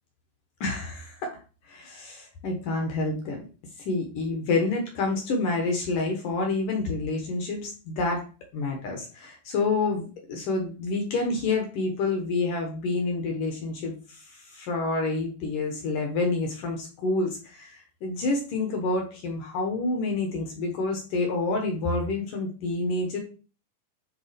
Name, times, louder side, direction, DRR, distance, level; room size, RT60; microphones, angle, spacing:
voice 1, 0.6-1.4 1.7-3.4 3.9-8.2 8.5-23.2, left 3 dB, 70° left, 2 dB, 2.0 m, -28 dB
10.5 x 3.7 x 5.2 m, 0.36 s
omnidirectional pair, 5.8 m